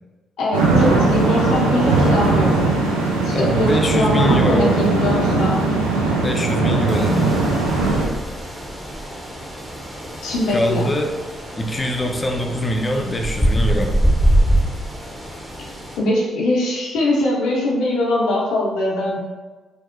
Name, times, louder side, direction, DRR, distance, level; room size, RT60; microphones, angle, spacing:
voice 1, 0.4-2.7 3.2-5.6 10.2-10.9 16.0-19.2, left 1 dB, 70° left, -4 dB, 0.6 m, -21 dB
sound 1, 0.5-8.1, right 3 dB, 90° right, 0.3 m, -19 dB
voice 2, 3.3-4.7 6.2-7.2 10.5-11.1 11.6-14.0, left 1 dB, 25° left, 3 dB, 0.4 m, -23 dB
sound 2, 6.9-16.0, right 1 dB, 15° right, 0.7 m, -24 dB
2.9 x 2.0 x 2.5 m, 1.3 s
hypercardioid pair, 45°, 0 cm